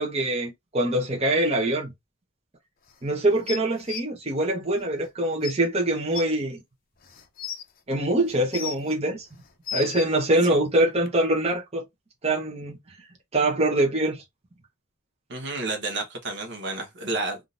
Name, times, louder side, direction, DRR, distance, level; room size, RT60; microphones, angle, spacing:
voice 1, 0.0-1.9 3.0-6.6 7.9-9.3 9.7-11.8 12.2-12.8 13.3-14.2, right 1 dB, 30° right, 0.9 m, -24 dB
sound 1, 3.5-4.0 5.0-5.1 5.4-5.5 6.1-6.2 7.0-7.6 8.3-8.9 9.4-10.1 11.1-11.2, left 8 dB, 45° left, 0.6 m, -34 dB
voice 2, 15.3-17.4, right 2 dB, 60° right, 1.0 m, -30 dB
3.7 x 2.6 x 2.5 m
head